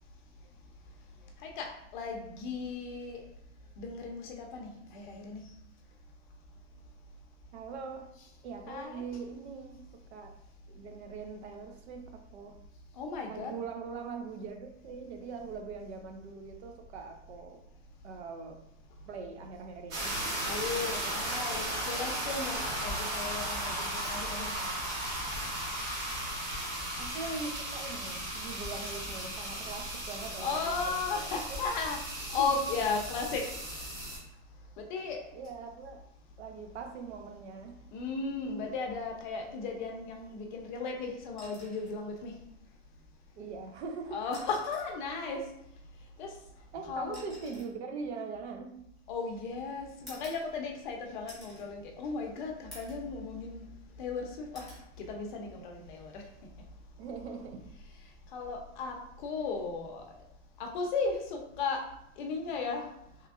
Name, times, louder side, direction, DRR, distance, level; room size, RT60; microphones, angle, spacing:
voice 1, 1.9-3.2 3.8-5.4 8.7-9.0 13.0-13.5 20.4-24.7 30.4-32.0 32.3-33.4 34.8-35.2 37.9-42.3 44.1-45.4 46.2-46.3 46.9-47.3 49.1-53.6 54.0-54.7 55.1-56.2 58.3-60.0 60.6-61.8 62.2-62.8, left 4 dB, 40° left, 2 dB, 0.6 m, -35 dB
voice 2, 7.5-8.1 8.4-10.3 10.7-12.6 13.3-17.6 18.0-18.6 19.0-20.2 27.0-31.2 32.3-32.5 35.3-36.0 36.4-37.8 43.4-44.2 46.7-48.8 57.0-57.7, right 4 dB, 65° right, 5 dB, 0.7 m, -42 dB
sound 1, 19.9-34.2, right 1 dB, 50° right, 1.5 m, -36 dB
sound 2, 41.4-42.0 43.4-43.6 44.2-45.0 46.2-49.2 50.1-50.9 51.3-51.7 52.1-52.2 52.7-53.1 53.5-54.1 54.5-54.9 56.3-56.6, left 1 dB, ahead, 1.3 m, -52 dB
3.5 x 3.1 x 2.4 m, 0.75 s
supercardioid pair, 160°, 35 cm